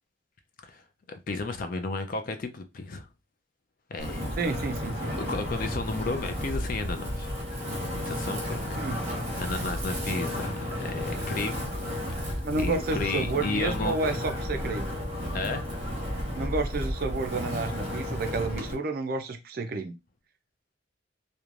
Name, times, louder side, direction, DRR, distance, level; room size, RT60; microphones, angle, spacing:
voice 1, 1.1-3.1 3.9-4.3 5.1-7.3 8.1-8.8 9.4-11.7 12.3-13.9 15.3-15.6, left 3 dB, 45° left, 0.4 m, -33 dB
Wind, 4.0-18.7, equal, 30° right, 1.0 m, -33 dB
voice 2, 4.4-5.1 8.8-9.0 12.4-15.0 16.3-19.9, right 3 dB, 50° right, 0.4 m, -30 dB
3.1 x 2.1 x 2.4 m
head